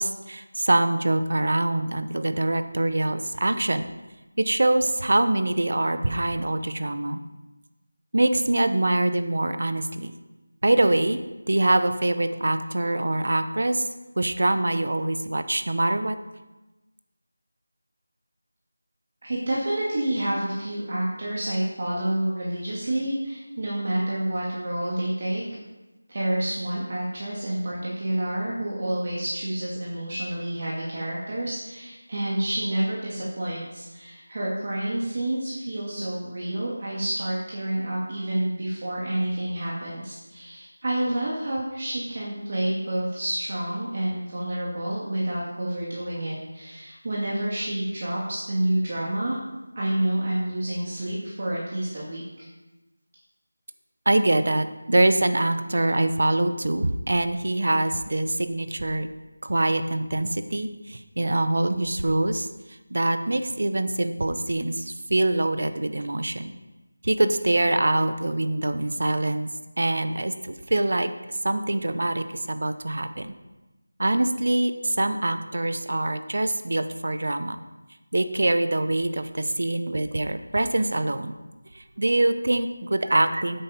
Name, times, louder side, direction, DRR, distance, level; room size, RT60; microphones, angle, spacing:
voice 1, 0.0-3.9 4.4-7.2 8.1-10.1 10.6-11.2 11.5-13.9 14.2-16.2 54.1-59.1 59.4-62.5 62.9-66.5 67.0-69.5 69.8-71.1 71.4-73.3 74.0-77.6 78.1-81.3 81.7-83.6, right 1 dB, 65° right, 10 dB, 1.0 m, -24 dB
voice 2, 19.2-25.4 26.1-49.4 49.8-52.5, right 1 dB, 45° right, -6 dB, 2.6 m, -29 dB
9.6 x 8.2 x 5.3 m, 1.1 s
figure-of-eight pair, 170°, 0 cm